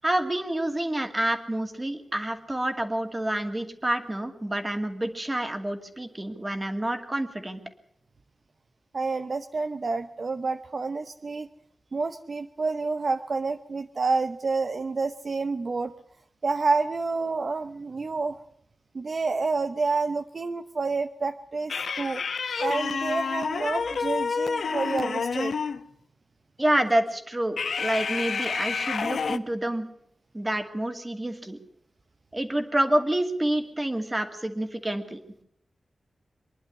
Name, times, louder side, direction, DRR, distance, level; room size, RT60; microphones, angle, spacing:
voice 1, 0.0-7.6 26.6-29.9 30.3-31.6 32.3-35.2, right 1 dB, 20° right, 6 dB, 2.4 m, -28 dB
voice 2, 8.9-11.5 11.9-15.9 16.4-18.4 18.9-22.2 22.6-25.5, right 4 dB, 50° right, 8 dB, 0.8 m, -29 dB
sound 1, 21.7-25.9 27.6-29.4, left 5 dB, 80° left, 0.9 m, -29 dB
24.5 x 11.0 x 10.0 m, 0.72 s
wide cardioid pair, 115°, 0 cm